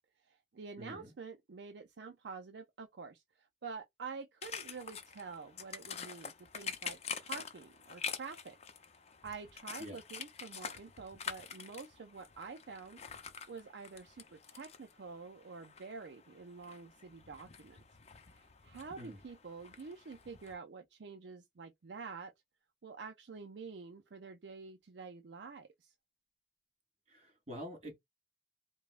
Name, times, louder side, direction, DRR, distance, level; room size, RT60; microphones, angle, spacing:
voice 1, 0.2-8.6 9.2-13.0 13.5-17.8 18.3-22.3 22.8-25.9, right 5 dB, 70° right, 0.5 m, -48 dB
voice 2, 0.8-1.1 9.8-10.0 19.0-19.2 27.1-28.0, equal, 40° right, 2.9 m, -46 dB
sound 1, 4.4-20.5, left 6 dB, 35° left, 0.6 m, -47 dB
5.0 x 2.3 x 2.4 m
head